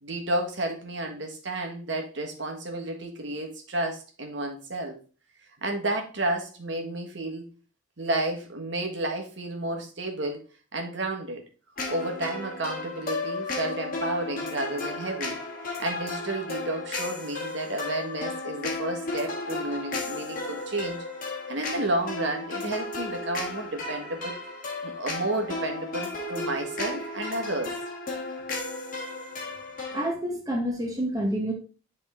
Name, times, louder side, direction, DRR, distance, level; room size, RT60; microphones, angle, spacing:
voice 1, 0.0-5.0 5.6-7.5 8.0-10.4 10.7-11.4 11.9-15.4 15.8-21.0 21.5-24.3 24.8-27.7, right 1 dB, 60° right, 2 dB, 1.4 m, -31 dB
sound 1, 11.8-30.1, left 3 dB, 45° left, 1.3 m, -34 dB
voice 2, 29.9-31.5, right 1 dB, 15° right, -1 dB, 1.1 m, -28 dB
8.0 x 3.7 x 3.6 m, 0.38 s
head